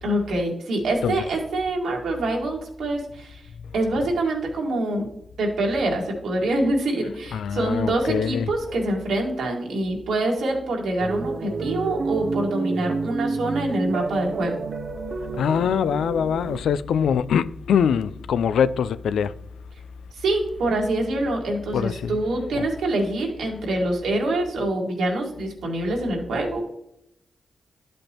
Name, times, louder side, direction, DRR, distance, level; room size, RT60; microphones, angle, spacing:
voice 1, 0.0-3.4 3.7-5.1 5.4-14.5 20.2-26.6, right 1 dB, 85° right, 1.9 m, -25 dB
voice 2, 7.3-8.8 15.3-19.3 21.7-22.2 22.5-22.7, left 7 dB, 90° left, 0.3 m, -23 dB
sound 1, 11.0-16.6, right 4 dB, 60° right, 0.5 m, -29 dB
11.5 x 5.2 x 2.9 m
cardioid pair, 60°, 0 cm